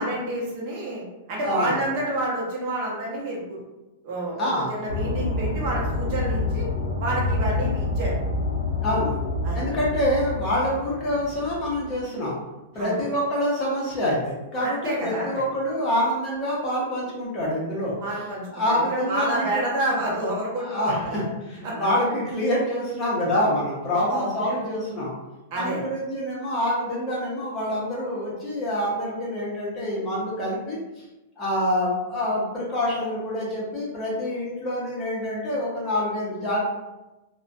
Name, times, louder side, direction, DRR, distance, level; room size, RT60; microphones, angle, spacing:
voice 1, 0.0-3.6 4.0-6.7 7.0-8.1 9.4-9.6 12.7-13.1 14.6-15.4 18.0-21.2 21.6-21.9 23.9-24.4 25.5-25.8, right 1 dB, 35° right, -4 dB, 0.8 m, -29 dB
voice 2, 1.4-1.8 4.4-4.7 8.8-9.2 9.5-12.4 12.7-18.0 18.5-19.7 20.6-21.2 21.5-25.1 25.5-31.0 31.4-36.6, left 1 dB, 15° left, -6 dB, 0.7 m, -26 dB
sound 1, 4.9-12.0, left 3 dB, 75° left, 0.6 m, -28 dB
2.4 x 2.1 x 2.5 m, 1.0 s
supercardioid pair, 175°, 0 cm